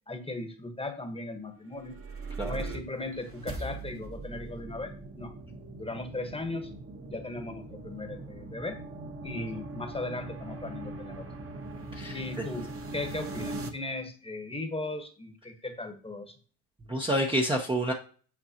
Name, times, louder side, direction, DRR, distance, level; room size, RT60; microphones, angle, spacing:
voice 1, 0.1-2.0 2.4-5.3 5.8-6.7 7.1-8.8 9.2-11.3 12.1-16.3, left 2 dB, 10° left, 6 dB, 1.2 m, -37 dB
sound 1, 1.6-13.7, right 2 dB, 30° right, 1.1 m, -41 dB
voice 2, 16.9-17.9, right 1 dB, 10° right, 0 dB, 0.8 m, -28 dB
8.7 x 4.5 x 2.8 m, 0.41 s
supercardioid pair, 85°, 48 cm